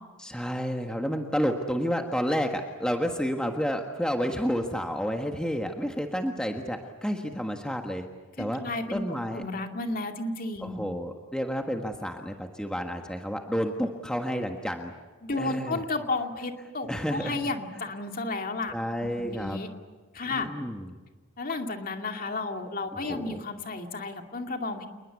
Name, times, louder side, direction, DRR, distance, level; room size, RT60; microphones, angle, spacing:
voice 1, 0.2-8.1 8.4-8.6 8.9-9.4 10.6-14.9 15.4-15.8 16.9-17.4 18.7-19.6 20.3-20.9 23.1-23.4, equal, 5° left, 3 dB, 1.5 m, -30 dB
voice 2, 8.4-9.0 9.3-10.8 15.2-18.7 19.0-19.7 20.1-20.5 21.4-24.9, left 3 dB, 40° left, 4 dB, 2.4 m, -32 dB
28.5 x 21.0 x 8.4 m, 1.3 s
head